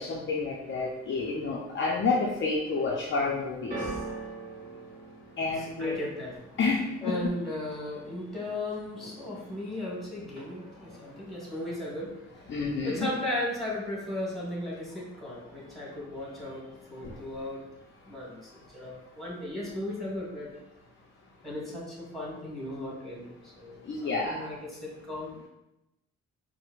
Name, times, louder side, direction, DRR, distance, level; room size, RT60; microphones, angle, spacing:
voice 1, 0.0-3.7 5.4-6.0 6.6-7.1 12.5-13.1 17.0-17.1 23.9-24.5, left 4 dB, 40° left, -3 dB, 0.5 m, -29 dB
sound 1, 3.7-10.0 10.2-10.9 11.6-11.7, right 2 dB, 30° right, 1.2 m, -43 dB
voice 2, 5.6-6.6 7.0-17.7 18.0-20.5 21.4-25.5, left 1 dB, ahead, -5 dB, 1.4 m, -36 dB
4.3 x 2.1 x 2.4 m, 0.91 s
cardioid pair, 90°, 30 cm